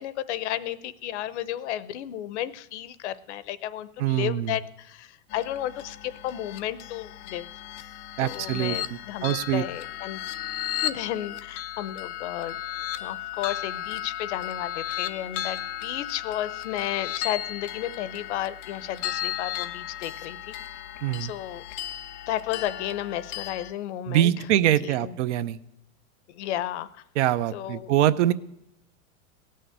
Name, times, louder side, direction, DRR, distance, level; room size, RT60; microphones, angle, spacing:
voice 1, 0.0-7.5 8.2-10.2 10.8-12.6 13.0-20.8 21.2-21.6 22.3-24.5 24.8-25.2 26.3-27.0 27.5-27.9, left 12 dB, 50° left, 17 dB, 0.8 m, -33 dB
voice 2, 4.0-4.6 8.2-9.6 21.0-21.3 24.1-25.6 27.2-28.3, right 12 dB, 55° right, 15 dB, 0.7 m, -24 dB
sound 1, 5.3-23.7, left 12 dB, 25° left, 0.4 m, -35 dB
17.5 x 6.5 x 9.1 m, 0.81 s
supercardioid pair, 150°, 44 cm